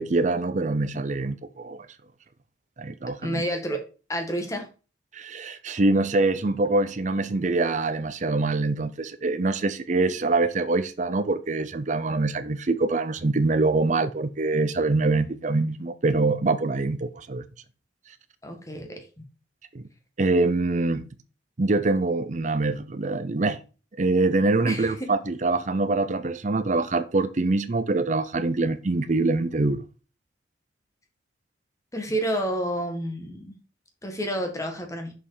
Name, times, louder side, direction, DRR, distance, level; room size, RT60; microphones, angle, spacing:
voice 1, 0.0-1.9 2.8-3.4 5.1-17.4 19.7-19.8 20.2-21.1 21.6-23.6 24.0-29.8, right 3 dB, 40° right, 0.6 m, -24 dB
voice 2, 3.2-3.8 4.1-4.7 18.4-19.1 24.7-25.1 31.9-33.5 34.0-35.1, right 1 dB, 15° left, 1.7 m, -29 dB
6.5 x 5.6 x 4.8 m
head